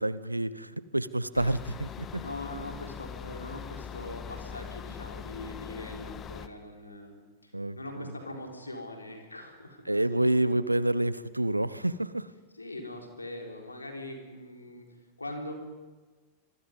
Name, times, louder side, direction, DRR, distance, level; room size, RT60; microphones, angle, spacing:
voice 1, 0.0-2.2 7.5-8.1 9.9-12.3, right 1 dB, 85° right, 17 dB, 0.8 m, -28 dB
sound 1, 1.4-6.5, left 7 dB, 25° left, 1.4 m, -41 dB
voice 2, 2.2-10.5 12.5-14.9 15.2-15.5, left 1 dB, 80° left, 2 dB, 4.2 m, -42 dB
26.0 x 23.5 x 5.4 m, 1.3 s
figure-of-eight pair, 90°, 0 cm